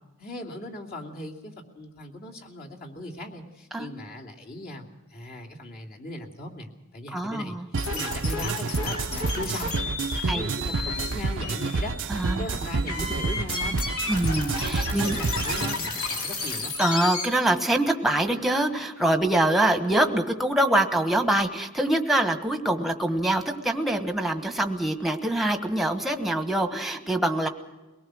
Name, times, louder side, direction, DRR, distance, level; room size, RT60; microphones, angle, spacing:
voice 1, 0.2-9.7 10.2-13.8 14.6-16.7, left 1 dB, 40° left, -1 dB, 2.9 m, -39 dB
voice 2, 7.1-7.7 10.3-10.4 12.1-12.5 13.0-13.1 14.1-15.2 16.8-27.5, right 1 dB, ahead, 7 dB, 1.3 m, -24 dB
sound 1, 7.7-15.7, right 4 dB, 60° right, 0.6 m, -29 dB
sound 2, 7.8-17.3, left 3 dB, 70° left, 3.2 m, -33 dB
23.0 x 18.5 x 6.3 m, 1.1 s
head